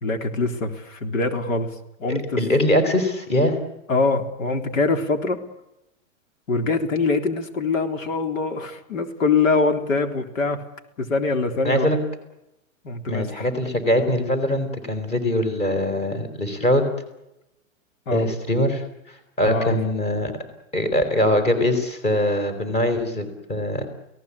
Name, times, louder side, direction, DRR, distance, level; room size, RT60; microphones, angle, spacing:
voice 1, 0.0-2.4 3.9-5.4 6.5-10.6 11.0-11.9 12.8-13.5 18.1-18.4 19.4-19.8, left 3 dB, 75° left, 6 dB, 3.8 m, -23 dB
voice 2, 2.1-3.6 11.6-12.0 13.1-16.9 18.1-18.8 19.4-20.3 20.7-23.8, left 1 dB, 15° left, 9 dB, 4.1 m, -22 dB
29.5 x 18.0 x 8.5 m, 0.87 s
hypercardioid pair, 160°, 39 cm